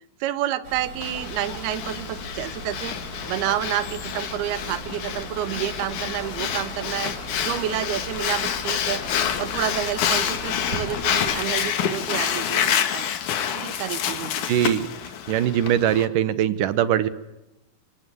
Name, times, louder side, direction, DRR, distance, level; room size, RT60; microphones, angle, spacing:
voice 1, 0.2-7.1 7.4-9.0 9.4-13.1 13.5-14.4, right 12 dB, 90° right, 14 dB, 3.1 m, -29 dB
sound 1, 0.6-11.4, right 2 dB, 20° right, 6.6 m, -39 dB
Breathing, 1.0-16.1, left 8 dB, 60° left, 2.8 m, -28 dB
Bark, 1.1-2.0 3.2-4.3 5.0-5.2 6.2-7.0, left 6 dB, 90° left, 4.5 m, -44 dB
voice 2, 14.5-14.8 15.3-17.1, right 10 dB, 70° right, 13 dB, 2.6 m, -21 dB
25.0 x 24.5 x 8.6 m, 0.92 s
omnidirectional pair, 4.3 m